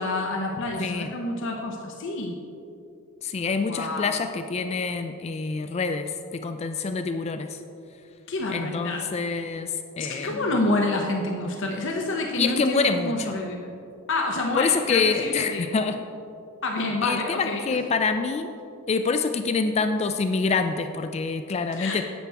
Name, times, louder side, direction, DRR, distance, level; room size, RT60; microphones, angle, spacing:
voice 1, 0.0-2.3 3.7-4.1 8.3-9.0 10.0-13.8 14.1-15.7 16.6-17.6 21.7-22.0, left 2 dB, 60° left, 1 dB, 0.8 m, -28 dB
voice 2, 0.8-1.1 3.2-6.1 6.4-7.6 8.5-10.5 12.4-13.4 14.6-16.0 17.0-18.5 18.9-22.0, left 4 dB, 30° left, 8 dB, 0.3 m, -26 dB
10.5 x 7.9 x 3.4 m, 2.6 s
head